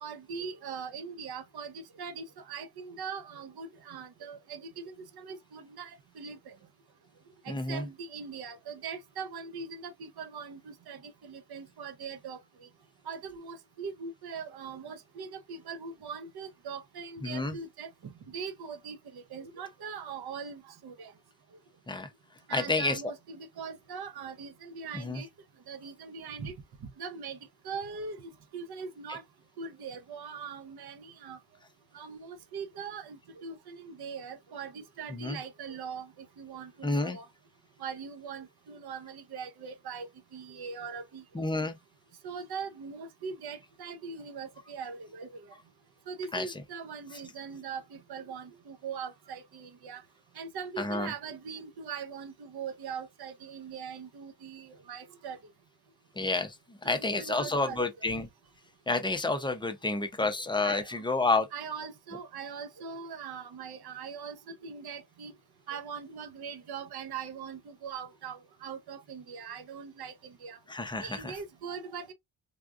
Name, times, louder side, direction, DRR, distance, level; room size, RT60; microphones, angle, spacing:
voice 1, 0.0-6.5 7.4-12.4 13.1-21.1 22.5-25.3 25.7-26.5 26.8-27.4 27.6-29.2 29.6-31.4 31.9-37.3 37.8-40.1 40.3-41.4 42.2-45.4 46.1-50.0 50.4-55.4 56.9-57.9 60.6-60.9 61.5-65.3 65.7-70.6 71.0-72.1, right 6 dB, 55° right, 0.8 m, -41 dB
voice 2, 7.5-7.8 17.2-17.5 21.9-22.1 22.5-23.0 24.9-25.2 35.1-35.4 36.8-37.2 41.3-41.8 46.3-46.5 50.8-51.1 56.2-58.3 58.9-61.5 70.7-71.3, left 3 dB, 10° left, 0.5 m, -30 dB
3.5 x 2.3 x 2.4 m
cardioid pair, 130°, 45 cm